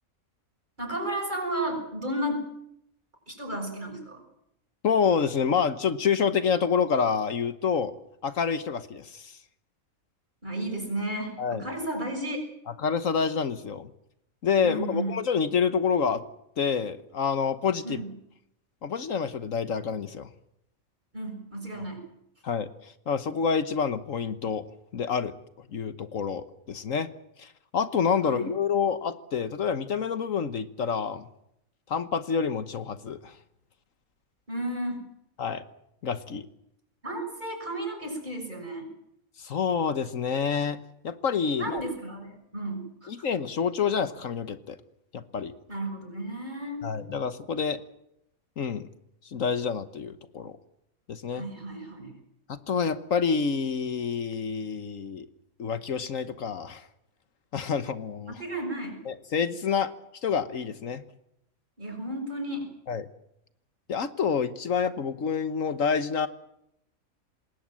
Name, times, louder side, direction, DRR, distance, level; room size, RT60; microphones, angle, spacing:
voice 1, 0.8-2.4 3.3-4.2 10.4-12.4 14.6-15.2 17.8-18.1 21.1-22.0 28.2-28.5 34.5-35.0 37.0-38.9 41.6-43.1 45.7-46.8 51.3-52.1 58.4-59.0 61.8-62.7, right 1 dB, 35° right, 3 dB, 6.6 m, -33 dB
voice 2, 4.8-7.9 8.2-9.4 11.4-11.7 12.8-13.9 14.4-16.2 16.6-18.0 18.8-20.3 22.4-24.6 24.9-25.3 25.7-27.1 27.4-31.2 31.9-33.4 35.4-35.6 36.0-36.5 39.4-40.8 41.0-41.8 43.1-44.8 45.1-45.5 46.8-47.8 48.6-48.9 49.2-50.6 51.1-51.4 52.5-55.3 55.6-56.9 57.5-58.4 59.0-59.9 60.2-61.0 62.9-63.1 63.9-66.3, left 6 dB, 70° left, 12 dB, 1.5 m, -28 dB
26.5 x 20.5 x 7.5 m, 0.78 s
omnidirectional pair, 1.4 m